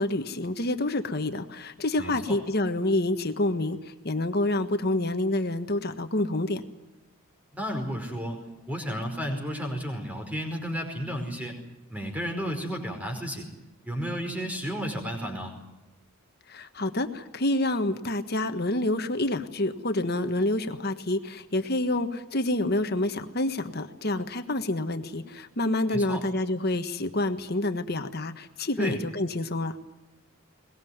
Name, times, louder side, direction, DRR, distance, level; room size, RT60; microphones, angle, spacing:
voice 1, 0.0-6.6 16.5-29.8, left 1 dB, 45° left, 8 dB, 1.5 m, -28 dB
voice 2, 2.0-2.4 7.5-11.6 11.9-13.5 13.8-15.5 25.9-26.2 28.8-29.0, equal, 5° right, 4 dB, 4.9 m, -32 dB
22.5 x 20.5 x 9.4 m, 1.1 s
head